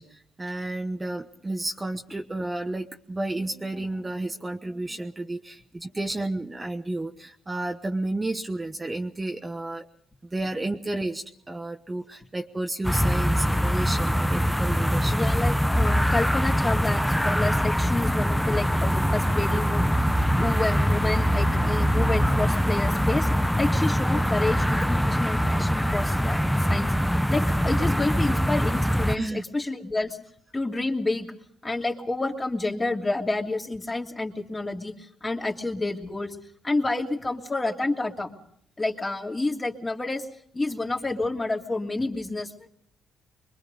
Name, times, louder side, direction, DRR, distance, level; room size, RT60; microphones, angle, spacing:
voice 1, 0.0-9.8 10.2-15.4 29.1-29.4, right 2 dB, 20° right, 4 dB, 1.2 m, -32 dB
sound 1, 12.8-29.2, equal, ahead, 0.8 m, -23 dB
voice 2, 15.1-19.9 20.4-23.3 23.6-26.9 27.3-30.2 30.5-31.3 31.6-36.4 36.6-38.3 38.8-40.2 40.5-42.7, left 2 dB, 20° left, 1 dB, 2.9 m, -29 dB
25.0 x 22.0 x 5.4 m, 0.68 s
cardioid pair, 90°, 0 cm